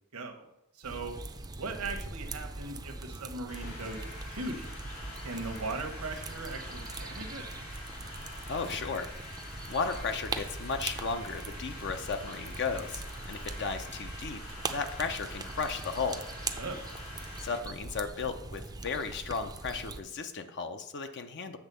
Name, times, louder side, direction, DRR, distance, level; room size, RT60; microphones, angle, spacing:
voice 1, 0.1-0.5 0.8-1.2 1.6-4.7 5.2-7.4 16.6-16.8, right 3 dB, 75° right, 5 dB, 1.1 m, -39 dB
sound 1, 0.8-20.0, right 3 dB, 15° right, 0.5 m, -41 dB
sound 2, 3.5-17.6, left 2 dB, 85° left, 2.4 m, -46 dB
voice 2, 8.5-9.1 9.7-16.2 17.4-21.6, left 5 dB, 50° left, 7 dB, 0.6 m, -35 dB
8.1 x 3.6 x 6.7 m, 0.85 s
head